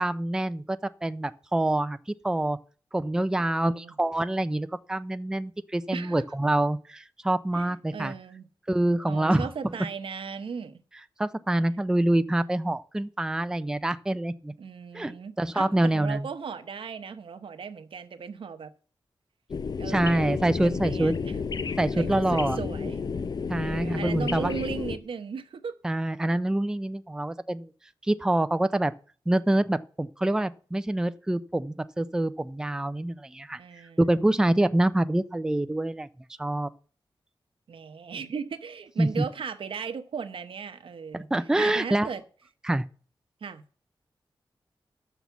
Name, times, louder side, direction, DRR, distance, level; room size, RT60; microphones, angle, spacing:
voice 1, 0.0-2.0 2.2-2.6 2.9-8.1 8.7-9.5 11.2-14.5 14.9-15.1 15.4-16.2 19.9-21.1 21.8-22.6 23.5-24.5 25.8-27.7 28.0-28.9 29.3-33.6 34.0-36.1 36.4-36.7 39.0-39.2 41.1-42.1 42.6-42.8, right 1 dB, 5° right, 0.4 m, -26 dB
voice 2, 3.4-4.0 5.9-6.2 7.5-8.5 9.1-10.8 14.6-18.7 19.8-21.4 22.0-23.0 23.6-25.7 33.6-34.2 37.7-41.3 41.6-42.2 43.4-43.6, right 6 dB, 85° right, 1.0 m, -37 dB
sound 1, 19.5-25.0, left 5 dB, 50° left, 0.6 m, -31 dB
12.0 x 6.1 x 7.1 m
wide cardioid pair, 155°, 9 cm